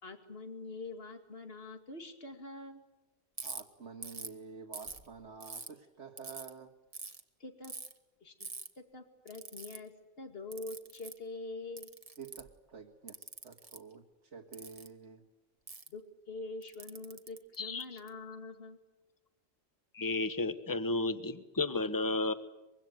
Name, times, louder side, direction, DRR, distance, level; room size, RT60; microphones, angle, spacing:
voice 1, 0.0-2.8 7.4-7.7 8.2-8.5 8.8-9.9 10.2-11.9 15.9-18.8, left 2 dB, 55° left, 6 dB, 2.6 m, -45 dB
Ratchet pawl, 3.4-3.6 4.0-4.3 4.7-5.7 6.2-6.5 6.9-7.2 7.6-7.9 8.4-8.7 9.3-9.8 10.5-11.2 11.8-12.5 13.1-13.8 14.5-14.9 15.7-15.9 16.6-18.1, right 3 dB, 30° right, 1.5 m, -44 dB
voice 2, 3.4-6.7 12.2-14.0 14.3-15.2, right 5 dB, 80° right, 0 dB, 2.1 m, -49 dB
voice 3, 19.9-22.3, left 2 dB, 20° left, 11 dB, 1.2 m, -32 dB
24.5 x 23.0 x 9.4 m, 1.0 s
omnidirectional pair, 1.2 m